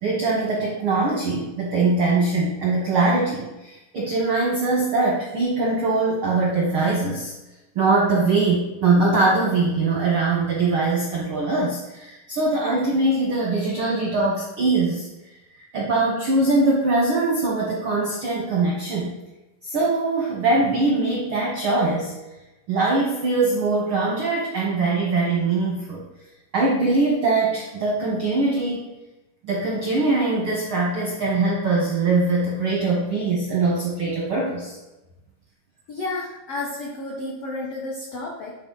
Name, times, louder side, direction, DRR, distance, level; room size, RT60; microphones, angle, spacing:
voice 1, 0.0-7.3 7.7-15.1 15.7-19.1 19.6-22.1 22.7-26.0 26.5-28.9 29.4-34.8, right 3 dB, 75° right, -3 dB, 1.2 m, -22 dB
voice 2, 35.9-38.6, left 2 dB, 80° left, -3 dB, 1.3 m, -31 dB
10.0 x 4.3 x 3.9 m, 1.0 s
omnidirectional pair, 4.3 m